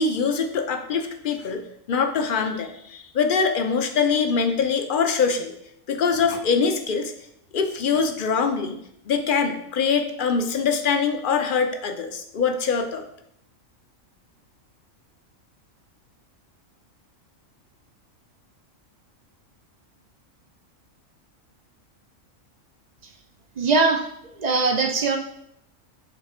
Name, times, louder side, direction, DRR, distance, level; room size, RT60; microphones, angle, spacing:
voice 1, 0.0-1.6 1.9-5.5 5.9-7.1 7.5-8.8 9.1-13.0, left 5 dB, 50° left, 6 dB, 0.6 m, -23 dB
voice 2, 23.6-24.0 24.4-25.2, right 4 dB, 55° right, 4 dB, 0.5 m, -21 dB
7.6 x 3.4 x 4.2 m, 0.75 s
omnidirectional pair, 1.4 m